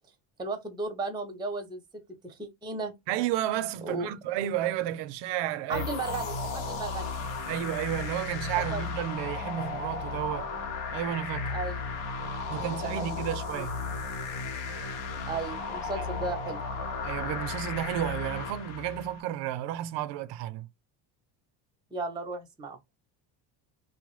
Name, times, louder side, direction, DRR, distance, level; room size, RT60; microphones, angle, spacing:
voice 1, 0.4-2.9 3.8-4.1 5.7-7.1 8.7-8.8 11.5-11.8 12.5-13.2 13.5-13.7 15.3-16.6 21.9-22.8, right 3 dB, 10° right, 0.6 m, -35 dB
voice 2, 3.1-5.9 7.5-10.5 10.9-11.5 12.5-13.8 16.0-16.1 17.0-20.7, right 12 dB, 65° right, 0.5 m, -32 dB
sound 1, 5.7-19.2, left 4 dB, 75° left, 0.8 m, -35 dB
2.1 x 2.0 x 3.0 m
supercardioid pair, 85°, 47 cm